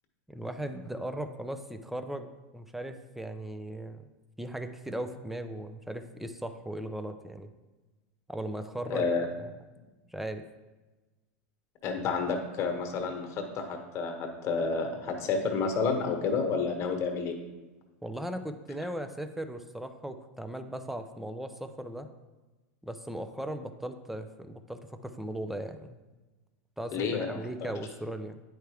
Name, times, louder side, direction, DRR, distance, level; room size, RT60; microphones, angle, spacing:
voice 1, 0.3-2.3 2.5-4.0 4.4-7.5 8.3-9.0 9.4-9.5 10.1-10.4 18.0-22.1 22.8-26.0 26.8-28.4, right 1 dB, 5° right, 8 dB, 0.5 m, -38 dB
voice 2, 8.9-9.3 11.8-17.4 26.9-27.5, left 4 dB, 40° left, 4 dB, 1.3 m, -30 dB
9.0 x 4.7 x 3.4 m, 1.2 s
hypercardioid pair, 115°, 8 cm